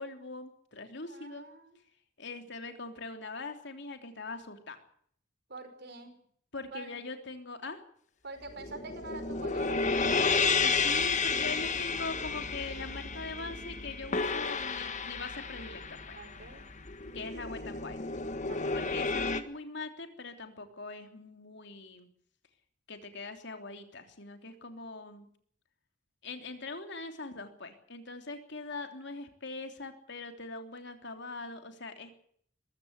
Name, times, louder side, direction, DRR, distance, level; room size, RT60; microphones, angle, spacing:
voice 1, 0.0-1.5 2.2-4.8 6.5-7.8 10.5-16.2 17.1-18.0 18.7-22.1 22.9-25.3 26.2-32.1, left 3 dB, 65° left, 6 dB, 3.3 m, -42 dB
voice 2, 1.1-1.8 5.5-6.1 6.7-6.9 8.2-10.0 16.2-16.6 18.5-18.8, right 3 dB, 60° right, 7 dB, 5.5 m, -45 dB
sound 1, 8.5-19.4, left 4 dB, 40° left, 1.6 m, -32 dB
22.0 x 15.5 x 8.2 m, 0.64 s
head